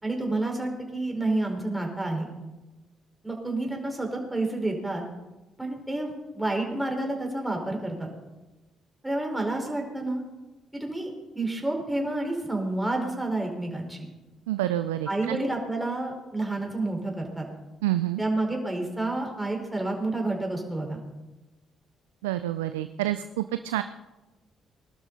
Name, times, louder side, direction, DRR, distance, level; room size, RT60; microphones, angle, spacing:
voice 1, 0.0-2.3 3.2-5.0 5.6-8.1 9.0-10.2 10.7-14.1 15.1-17.4 18.2-21.0, right 2 dB, 10° right, 1 dB, 4.5 m, -29 dB
voice 2, 14.5-15.4 17.8-18.2 22.2-23.8, right 14 dB, 85° right, 11 dB, 0.4 m, -28 dB
21.0 x 12.0 x 4.0 m, 1.1 s
hypercardioid pair, 50°, 0 cm